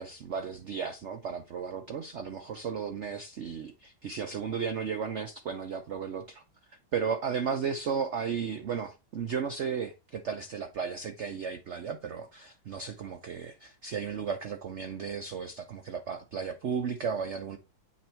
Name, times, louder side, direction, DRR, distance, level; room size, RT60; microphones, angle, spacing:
voice 1, 0.0-6.4 6.9-17.6, right 6 dB, 85° right, 0.6 m, -34 dB
8.6 x 3.3 x 4.4 m
omnidirectional pair, 2.1 m